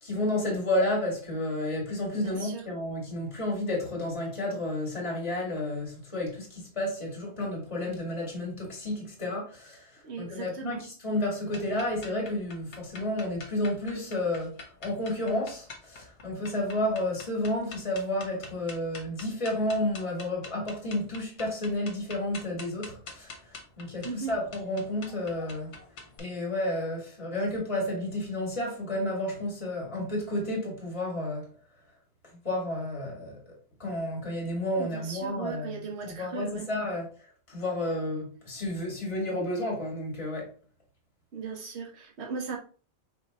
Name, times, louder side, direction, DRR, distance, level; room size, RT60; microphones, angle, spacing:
voice 1, 0.0-9.9 10.2-23.3 23.8-25.7 26.2-31.5 32.4-33.5 33.8-37.1 37.5-40.5, left 1 dB, 30° left, 1.8 m, -31 dB
voice 2, 2.1-2.6 10.0-10.8 24.0-24.3 34.8-36.7 41.3-42.6, right 5 dB, 75° right, 1.3 m, -37 dB
sound 1, 11.5-26.2, left 3 dB, 80° left, 1.2 m, -46 dB
5.0 x 3.6 x 2.9 m
omnidirectional pair, 1.1 m